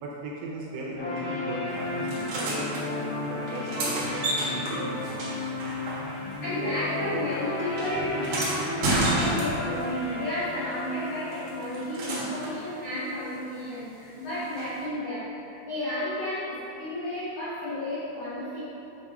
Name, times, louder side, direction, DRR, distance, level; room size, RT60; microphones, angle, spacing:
voice 1, 0.0-5.4, right 2 dB, 80° right, -3 dB, 2.4 m, -37 dB
sound 1, 1.0-13.0, left 2 dB, 55° left, 2.2 m, -34 dB
sound 2, 2.1-2.8 3.4-6.4 6.7-9.8 11.3-12.6 14.6-14.7, right 1 dB, 65° right, 2.0 m, -31 dB
voice 2, 6.2-18.6, left 1 dB, 80° left, -10 dB, 1.7 m, -32 dB
8.0 x 3.5 x 5.3 m, 2.9 s
omnidirectional pair, 5.4 m